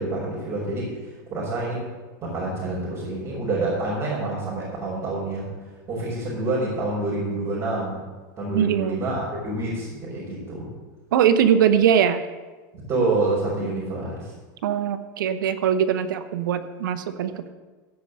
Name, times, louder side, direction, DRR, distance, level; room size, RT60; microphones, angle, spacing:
voice 1, 0.0-1.9 2.2-5.5 5.9-8.0 8.4-10.7 12.9-14.3, right 2 dB, 35° right, -8 dB, 4.8 m, -27 dB
voice 2, 8.5-9.0 11.1-12.2 14.6-17.5, right 9 dB, 80° right, 11 dB, 1.0 m, -21 dB
15.5 x 5.6 x 7.5 m, 1.3 s
supercardioid pair, 120°, 10 cm